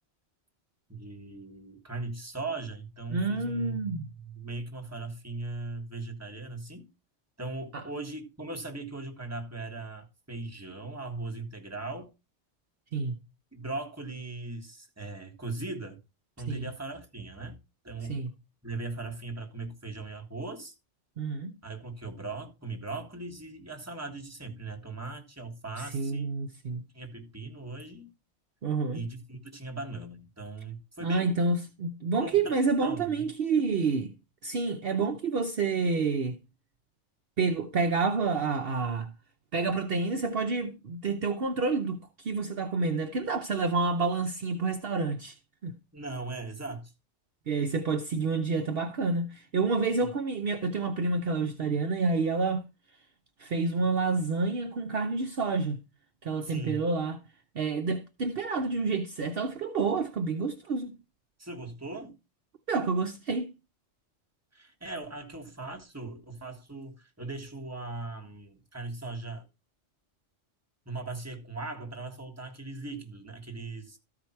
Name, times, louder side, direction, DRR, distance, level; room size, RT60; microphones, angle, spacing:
voice 1, 0.9-6.9 7.4-12.1 13.5-16.0 16.4-17.6 17.8-18.2 18.6-20.7 21.6-26.3 26.9-28.1 28.9-31.3 32.2-33.0 45.9-46.9 50.0-50.1 56.4-56.8 61.4-62.2 64.5-69.4 70.8-74.0, right 3 dB, 15° right, 1.6 m, -39 dB
voice 2, 3.1-4.1 7.7-7.8 12.9-13.2 16.5-16.7 18.1-18.3 21.2-21.6 25.8-26.9 28.6-29.0 31.0-34.2 34.4-36.4 37.4-39.1 39.5-45.3 45.6-45.8 47.5-52.6 53.4-55.8 56.2-57.2 57.5-60.9 62.7-63.5, right 4 dB, 55° right, 0.9 m, -29 dB
13.5 x 4.9 x 4.4 m
omnidirectional pair, 1.2 m